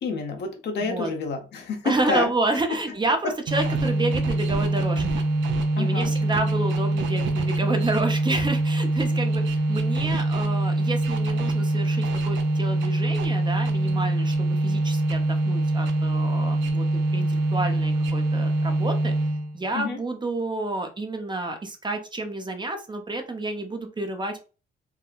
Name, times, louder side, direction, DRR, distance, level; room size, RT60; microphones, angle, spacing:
voice 1, 0.0-2.3 2.7-2.8 3.2-3.3 5.8-6.1 19.7-20.0, left 4 dB, 60° left, 5 dB, 0.8 m, -28 dB
voice 2, 0.8-1.1 1.8-5.3 5.8-19.1 19.5-24.4, right 2 dB, 20° right, 5 dB, 0.6 m, -29 dB
sound 1, 3.5-19.6, right 2 dB, 70° right, 0.6 m, -24 dB
3.7 x 2.1 x 2.4 m, 0.33 s
cardioid pair, 90°, 20 cm